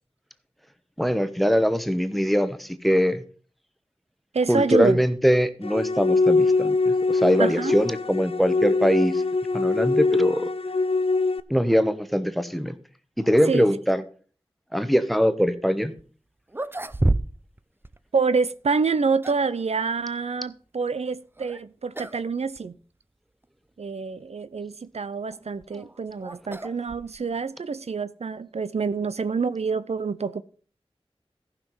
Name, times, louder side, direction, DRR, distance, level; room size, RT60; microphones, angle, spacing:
voice 1, 1.0-3.2 4.5-9.2 9.5-10.5 11.5-12.8 13.2-14.0 14.7-15.9, equal, ahead, 1.0 m, -22 dB
voice 2, 4.3-5.0 7.4-7.7 13.5-13.7 18.1-22.8 23.8-30.4, right 4 dB, 90° right, 0.5 m, -27 dB
sound 1, 5.6-11.4, left 3 dB, 65° left, 0.5 m, -23 dB
sound 2, 16.0-16.1 16.5-17.6 17.8-18.0 18.8-19.6 21.4-21.6 21.9-22.3 22.6-22.7 23.4-23.5 25.3-27.4, right 2 dB, 20° right, 0.5 m, -29 dB
14.5 x 5.9 x 5.5 m
wide cardioid pair, 55°, 11 cm